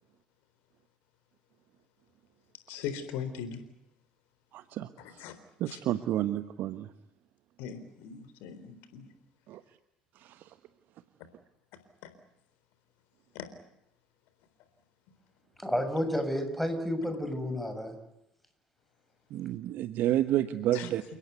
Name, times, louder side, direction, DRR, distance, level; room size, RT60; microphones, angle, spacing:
voice 1, 2.7-3.6 5.2-5.3 5.7-5.8 7.6-9.1 13.3-13.5 20.7-20.9, left 7 dB, 60° left, 4.0 m, -39 dB
voice 2, 4.5-5.2 5.6-6.9 9.5-9.6 10.2-10.5 19.3-21.0, right 13 dB, 50° right, 1.2 m, -30 dB
voice 3, 15.6-18.0, equal, ahead, 7.1 m, -31 dB
29.5 x 17.5 x 9.4 m
figure-of-eight pair, 60°, 4 cm